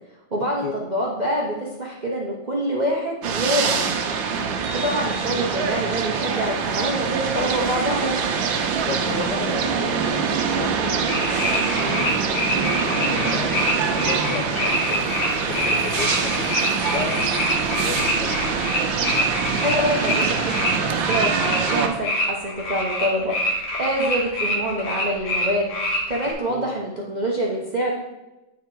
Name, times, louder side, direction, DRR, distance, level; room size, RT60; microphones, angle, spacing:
voice 1, 0.3-4.0 4.7-8.2 19.6-25.7 26.1-27.9, equal, 45° right, -3 dB, 0.5 m, -26 dB
sound 1, 3.2-21.9, right 6 dB, 70° right, 1.4 m, -24 dB
voice 2, 8.8-11.3 11.7-15.1 15.5-18.5 26.5-26.7, left 6 dB, 70° left, 2 dB, 1.1 m, -34 dB
sound 2, 11.1-20.7 21.0-26.3, left 1 dB, 85° left, 2.4 m, -25 dB
9.5 x 3.7 x 4.5 m, 1.0 s
omnidirectional pair, 2.3 m